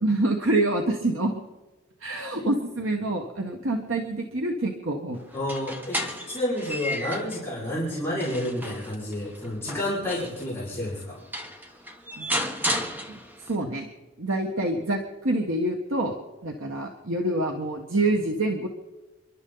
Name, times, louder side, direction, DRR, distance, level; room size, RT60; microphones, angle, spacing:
voice 1, 0.0-1.3 2.0-5.2 12.2-12.4 13.1-13.2 13.5-13.9 14.2-16.1 16.4-18.7, right 2 dB, 65° right, 2 dB, 1.5 m, -26 dB
voice 2, 5.3-11.2, left 1 dB, 10° left, -9 dB, 5.3 m, -30 dB
sound 1, 5.3-7.4 7.9-10.5 11.0-11.1 11.3-13.5, equal, 10° right, 1.2 m, -33 dB
30.0 x 12.0 x 4.0 m, 1.2 s
head